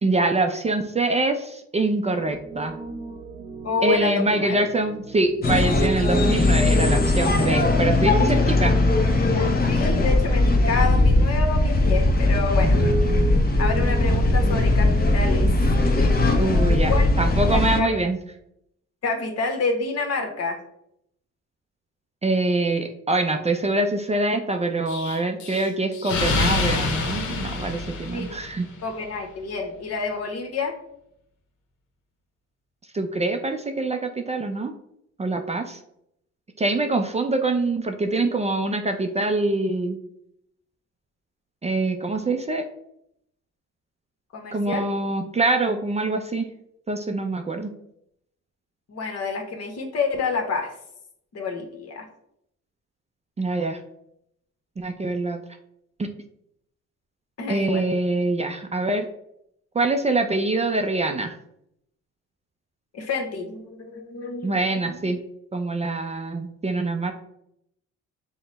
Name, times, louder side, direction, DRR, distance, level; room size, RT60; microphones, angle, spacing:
voice 1, 0.0-2.7 3.8-8.7 16.4-18.2 22.2-28.7 32.9-34.7 35.2-35.8 36.6-40.0 41.6-42.6 44.5-46.5 46.9-47.7 53.4-53.8 54.8-55.4 56.0-56.1 57.5-59.1 59.7-61.4 64.4-65.2 65.5-67.1, right 2 dB, 20° right, 5 dB, 0.4 m, -24 dB
Piano, 2.2-15.9, right 3 dB, 85° right, 1.0 m, -35 dB
voice 2, 3.6-4.6 9.7-12.8 13.6-15.5 16.9-18.0 19.0-20.6 28.1-28.3 28.8-30.7 44.3-44.9 48.9-50.7 51.3-52.0 57.4-57.8 62.9-64.6 64.9-65.0, left 4 dB, 55° left, 3 dB, 1.1 m, -28 dB
sound 1, 5.4-17.8, left 2 dB, 30° left, 0.8 m, -19 dB
Explosion, 24.9-28.7, left 3 dB, 75° left, 0.9 m, -27 dB
5.8 x 2.2 x 4.1 m, 0.76 s
cardioid pair, 90°, 30 cm